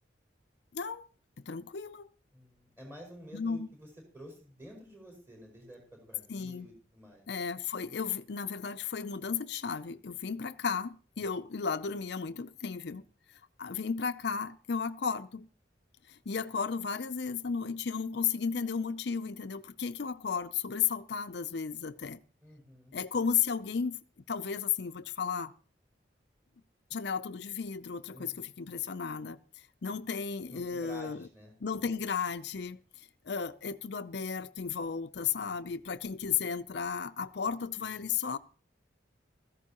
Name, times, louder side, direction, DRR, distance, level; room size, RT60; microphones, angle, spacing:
voice 1, 0.7-1.1 1.4-2.1 3.3-3.7 6.3-6.7 7.3-13.1 13.6-15.5 16.1-22.2 22.9-25.5 26.9-29.4 29.8-31.3 31.6-32.8 33.2-38.4, left 6 dB, 65° left, 0.5 m, -34 dB
voice 2, 2.3-3.9 4.1-7.4 22.4-22.9 28.1-28.4 30.5-31.5 35.4-35.7, equal, 15° right, 5.3 m, -50 dB
16.0 x 14.0 x 3.0 m
head